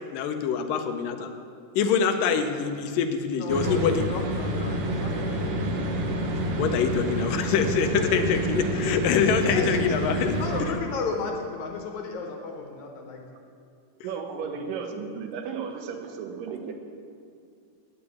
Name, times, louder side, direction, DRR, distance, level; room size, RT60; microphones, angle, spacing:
voice 1, 0.1-1.3 1.8-4.0 6.6-10.4, left 6 dB, 85° left, 7 dB, 2.4 m, -25 dB
voice 2, 3.4-5.6 7.6-8.3 9.5-9.9 10.4-13.2 14.3-14.5, left 4 dB, 70° left, 2 dB, 2.2 m, -34 dB
sound 1, 3.5-10.6, right 1 dB, 60° right, 1.7 m, -28 dB
voice 3, 14.0-16.7, right 6 dB, 80° right, 4 dB, 2.6 m, -34 dB
10.0 x 6.9 x 8.3 m, 2.4 s
omnidirectional pair, 3.9 m